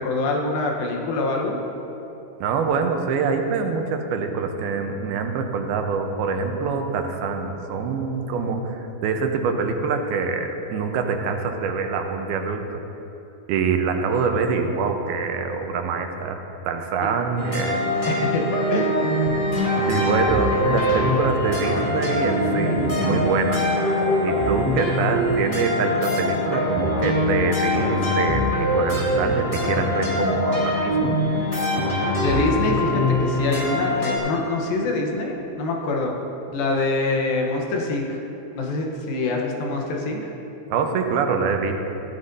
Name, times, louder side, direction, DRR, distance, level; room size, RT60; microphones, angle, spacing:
voice 1, 0.0-1.6 18.2-18.4 18.7-18.9 32.2-36.1 36.5-38.2 38.6-40.2, left 2 dB, 75° left, 0 dB, 2.8 m, -25 dB
voice 2, 2.4-12.8 13.5-16.4 16.7-17.9 19.9-23.7 24.2-31.2 40.7-41.7, right 5 dB, 85° right, 4 dB, 2.7 m, -25 dB
sound 1, 17.4-34.2, left 1 dB, 20° left, 1.5 m, -23 dB
15.0 x 13.0 x 2.7 m, 3.0 s
omnidirectional pair, 4.4 m